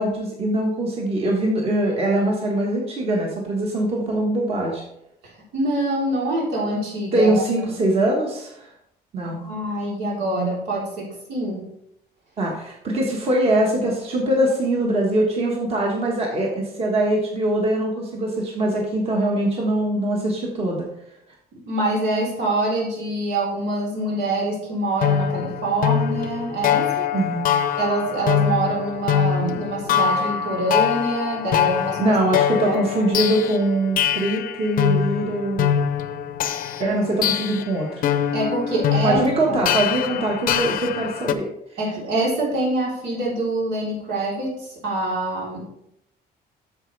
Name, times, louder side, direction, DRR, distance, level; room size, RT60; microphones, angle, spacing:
voice 1, 0.0-4.8 7.1-8.7 9.1-9.5 12.4-20.9 27.1-27.5 32.0-35.7 36.8-38.1 39.0-41.4, right 1 dB, 35° right, -1 dB, 1.4 m, -22 dB
voice 2, 5.5-7.4 9.2-11.7 21.5-27.1 27.8-32.2 32.6-32.8 38.3-39.6 41.8-45.6, right 2 dB, 85° right, -4 dB, 3.6 m, -25 dB
sound 1, 25.0-41.3, left 9 dB, 55° left, 0.5 m, -23 dB
9.4 x 6.9 x 3.3 m, 0.78 s
cardioid pair, 165°, 17 cm